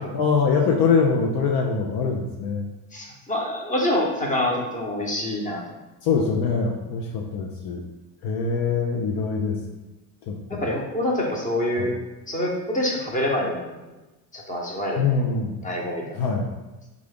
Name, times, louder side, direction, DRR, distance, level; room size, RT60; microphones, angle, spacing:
voice 1, 0.0-2.7 6.0-7.8 8.2-9.6 10.2-10.7 11.8-11.9 15.0-15.6 16.1-16.5, left 5 dB, 55° left, 0 dB, 0.6 m, -23 dB
voice 2, 2.9-5.6 10.5-11.9 12.3-13.7 14.3-15.0 15.6-16.1, left 1 dB, 15° left, -2 dB, 1.0 m, -26 dB
3.6 x 2.5 x 3.4 m, 1.1 s
hypercardioid pair, 70°, 45 cm